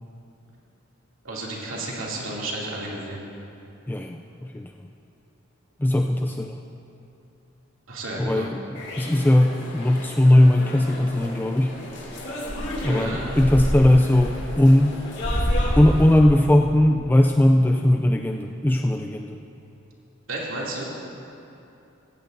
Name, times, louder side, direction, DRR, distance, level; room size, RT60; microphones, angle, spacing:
voice 1, 1.2-3.2 7.9-8.5 12.8-13.6 20.3-20.9, right 2 dB, 85° right, -4 dB, 2.6 m, -32 dB
voice 2, 3.9-4.2 4.5-4.7 5.8-6.6 8.2-11.7 12.8-15.0 15.8-19.4, left 1 dB, 10° left, 3 dB, 0.3 m, -19 dB
sound 1, 8.8-16.2, equal, 60° left, 2.6 m, -29 dB
17.0 x 15.0 x 2.6 m, 2.8 s
head